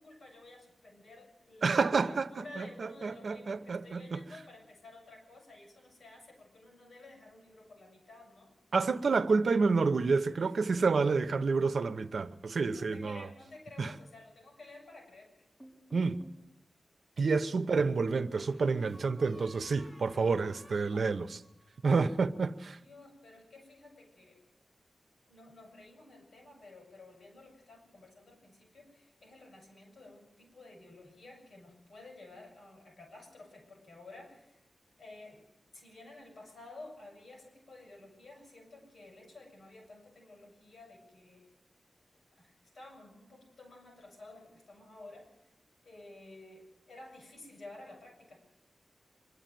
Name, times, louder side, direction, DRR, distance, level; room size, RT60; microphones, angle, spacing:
voice 1, 0.0-8.6 10.4-10.6 12.7-15.5 22.7-24.4 25.3-34.6 35.0-35.4 35.7-41.5 42.4-45.5 45.8-48.4, left 2 dB, 70° left, 6.5 m, -53 dB
voice 2, 1.6-4.2 8.7-13.2 13.8-13.9 15.9-16.2 17.2-21.4 21.8-22.8, right 4 dB, 70° right, 0.9 m, -29 dB
sound 1, 15.6-16.4 18.3-21.9, right 1 dB, 15° left, 6.1 m, -54 dB
25.0 x 11.5 x 9.3 m
wide cardioid pair, 120°, 0 cm